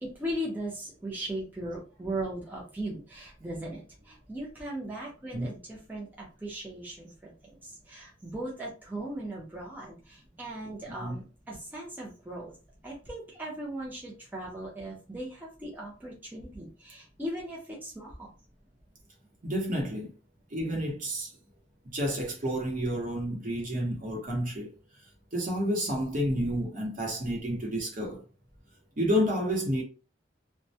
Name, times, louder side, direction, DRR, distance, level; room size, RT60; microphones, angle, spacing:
voice 1, 0.0-7.3 7.6-12.5 12.8-18.3, right 1 dB, 10° right, 0.6 m, -38 dB
voice 2, 19.4-20.1 20.5-21.3 21.8-24.7 25.3-28.2 29.0-29.8, equal, 45° right, 0.8 m, -30 dB
2.2 x 2.1 x 2.7 m
head